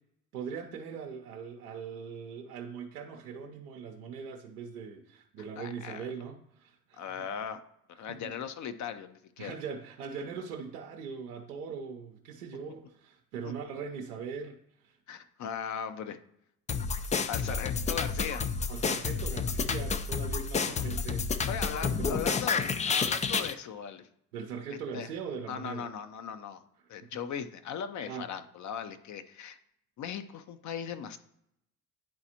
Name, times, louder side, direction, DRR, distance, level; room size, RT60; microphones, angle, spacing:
voice 1, 0.3-7.0 8.1-8.3 9.4-14.6 14.8-15.0 17.4-17.6 18.7-21.3 21.8-22.2 24.3-25.9 27.0-27.1 28.1-28.3, right 6 dB, 80° right, 2 dB, 0.7 m, -40 dB
voice 2, 5.6-6.1 7.0-7.6 7.9-9.6 13.4-13.5 15.1-16.2 17.3-18.4 20.7-20.9 21.5-24.1 24.7-25.1 25.5-26.6 26.9-29.6 30.0-31.2, left 8 dB, 40° left, 10 dB, 0.7 m, -38 dB
sound 1, 16.7-23.5, left 5 dB, 15° left, 0.4 m, -30 dB
10.5 x 4.0 x 2.9 m, 0.76 s
hypercardioid pair, 55°, 44 cm